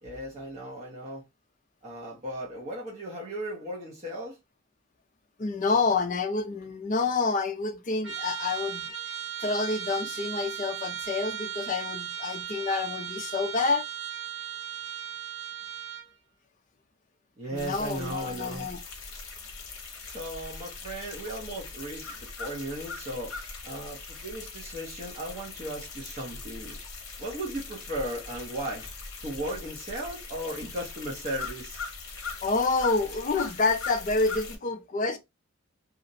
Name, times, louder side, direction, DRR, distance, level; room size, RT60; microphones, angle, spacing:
voice 1, 0.0-1.2 1.8-4.4 17.4-18.7 20.0-23.3 23.6-26.8 27.2-28.9 29.2-31.8, right 1 dB, 30° right, 0.7 m, -36 dB
voice 2, 5.4-8.9 9.4-13.9 17.5-18.8 32.4-35.2, left 3 dB, 35° left, 0.4 m, -28 dB
Trumpet, 8.0-16.1, right 10 dB, 60° right, 1.0 m, -37 dB
sound 1, 17.6-34.6, left 4 dB, 80° left, 0.7 m, -41 dB
2.4 x 2.0 x 2.5 m
head